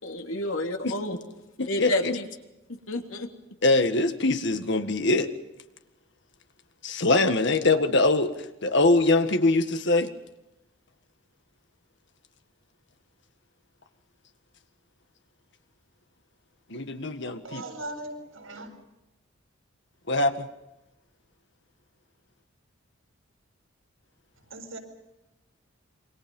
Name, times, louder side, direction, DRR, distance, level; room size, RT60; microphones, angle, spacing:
voice 1, 0.0-1.2 1.7-2.3 2.7-3.3, left 1 dB, 75° left, 3.1 m, -30 dB
voice 2, 1.6-2.1 3.6-5.3 6.8-8.3 8.6-10.1 16.7-17.6 20.1-20.5, left 2 dB, 60° left, 1.8 m, -23 dB
voice 3, 17.4-18.7 24.4-24.8, right 2 dB, 85° right, 7.4 m, -39 dB
27.5 x 25.0 x 5.5 m
head